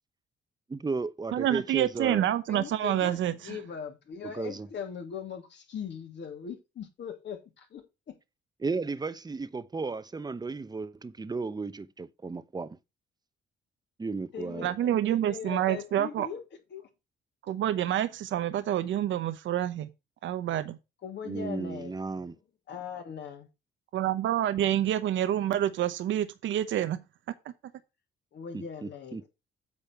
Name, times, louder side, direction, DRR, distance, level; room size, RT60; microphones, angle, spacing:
voice 1, 0.7-2.3 4.3-4.7 8.6-12.8 14.0-14.7 21.2-22.4 28.5-29.2, right 4 dB, 20° right, 0.8 m, -34 dB
voice 2, 1.3-3.6 14.6-16.3 17.5-19.9 20.2-20.8 23.9-27.0, right 11 dB, 75° right, 0.9 m, -28 dB
voice 3, 2.5-8.1 14.3-16.4 16.7-16.9 21.0-22.3 22.7-23.5 28.3-29.3, left 7 dB, 65° left, 2.8 m, -40 dB
8.5 x 5.0 x 5.7 m
cardioid pair, 90°, 20 cm